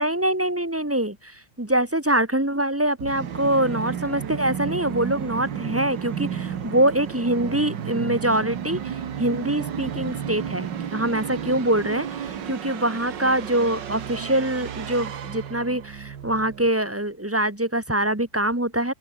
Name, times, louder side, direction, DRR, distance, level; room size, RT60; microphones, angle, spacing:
voice 1, 0.0-18.9, right 1 dB, 10° right, 1.4 m, -24 dB
Musical instrument, 3.0-16.7, right 8 dB, 80° right, 2.1 m, -32 dB
open air
omnidirectional pair, 1.9 m